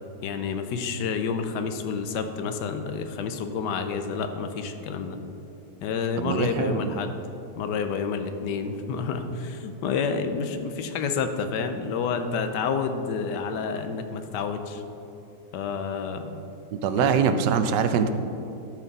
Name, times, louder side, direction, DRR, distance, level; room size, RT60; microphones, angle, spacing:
voice 1, 0.2-5.2 5.8-7.2 7.6-14.8 15.5-16.4 17.0-17.3, left 5 dB, 90° left, 8 dB, 1.3 m, -29 dB
voice 2, 6.2-7.0 16.7-18.1, right 7 dB, 85° right, 9 dB, 1.2 m, -23 dB
12.0 x 5.9 x 4.0 m, 2.8 s
omnidirectional pair, 1.8 m